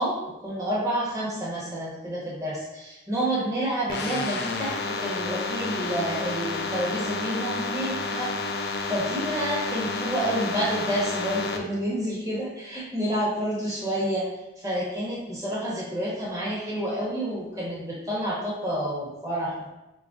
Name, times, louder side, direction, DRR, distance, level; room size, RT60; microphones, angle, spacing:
voice 1, 0.0-14.3 14.6-19.7, right 1 dB, 20° right, -4 dB, 0.9 m, -29 dB
sound 1, 3.9-11.6, left 3 dB, 65° left, 0.4 m, -30 dB
4.5 x 3.8 x 2.4 m, 0.97 s
head